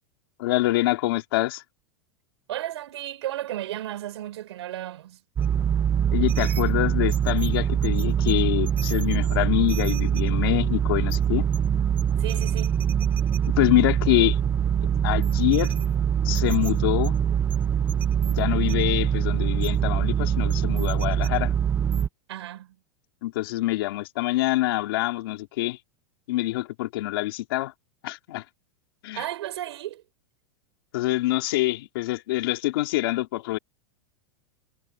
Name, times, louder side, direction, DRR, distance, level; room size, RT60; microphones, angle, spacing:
voice 1, 0.4-1.6 6.1-11.4 13.6-14.4 15.0-15.7 16.2-17.2 18.3-21.5 23.2-25.8 26.3-27.7 28.0-28.4 29.0-29.2 30.9-33.6, left 17 dB, 55° left, 3.1 m, -25 dB
voice 2, 2.5-5.2 12.2-12.8 22.3-22.8 29.1-30.0, right 13 dB, 75° right, 4.8 m, -34 dB
sound 1, 5.4-22.1, right 8 dB, 15° right, 0.8 m, -23 dB
supercardioid pair, 175°, 14 cm